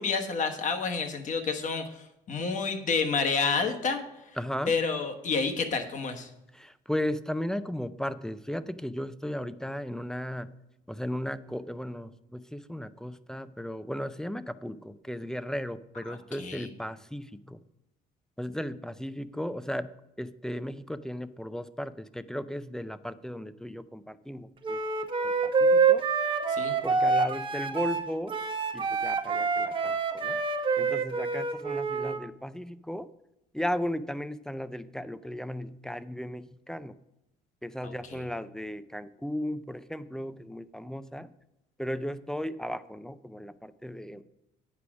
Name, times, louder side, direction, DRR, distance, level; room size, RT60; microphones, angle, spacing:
voice 1, 0.0-1.9 2.3-4.0 4.7-6.3 16.1-16.7 26.5-26.8 37.8-38.2, left 5 dB, 50° left, 6 dB, 1.2 m, -29 dB
voice 2, 4.4-4.7 6.5-10.5 10.9-17.6 18.4-19.9 20.2-24.8 25.2-26.0 26.8-28.4 28.7-30.4 30.8-33.1 33.5-36.9 37.6-41.3 41.8-44.2, equal, 5° left, 14 dB, 0.3 m, -35 dB
Wind instrument woodwind instrument, 24.6-32.2, right 4 dB, 30° right, 0.9 m, -27 dB
8.4 x 4.8 x 6.0 m, 0.90 s
cardioid pair, 110°, 17 cm